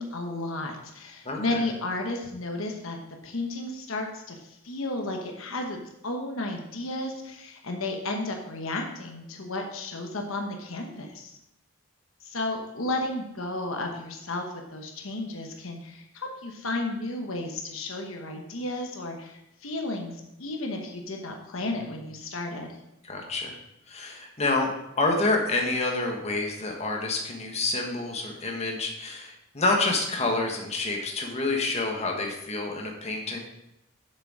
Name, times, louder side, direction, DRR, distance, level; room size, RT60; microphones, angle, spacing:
voice 1, 0.0-3.0 3.2-11.4 12.2-22.7, left 2 dB, 70° left, 2 dB, 1.1 m, -33 dB
voice 2, 1.2-1.6 23.0-23.6 23.9-24.7 25.0-33.4, left 2 dB, 30° left, 1 dB, 1.3 m, -28 dB
7.4 x 6.7 x 4.9 m, 0.86 s
head